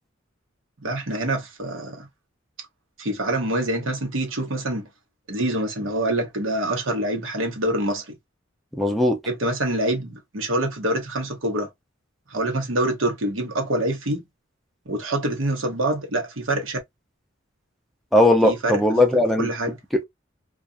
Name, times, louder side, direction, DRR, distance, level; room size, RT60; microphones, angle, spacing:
voice 1, 0.8-2.1 3.0-4.9 5.3-8.2 9.3-11.7 12.3-14.2 14.9-16.8 18.4-18.8 19.1-19.7, right 1 dB, 85° right, 1.0 m, -25 dB
voice 2, 8.7-9.2 18.1-19.5 19.9-20.0, left 1 dB, ahead, 0.5 m, -18 dB
2.5 x 2.3 x 2.5 m
head